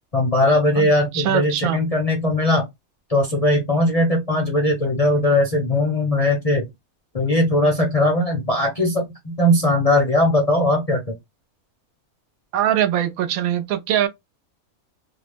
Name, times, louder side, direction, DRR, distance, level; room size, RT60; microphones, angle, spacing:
voice 1, 0.1-2.6 3.1-6.7 7.1-11.0, left 1 dB, 40° left, 0.6 m, -19 dB
voice 2, 0.8-1.8 12.5-14.1, right 11 dB, 75° right, 1.0 m, -22 dB
2.8 x 2.0 x 3.3 m
omnidirectional pair, 1.5 m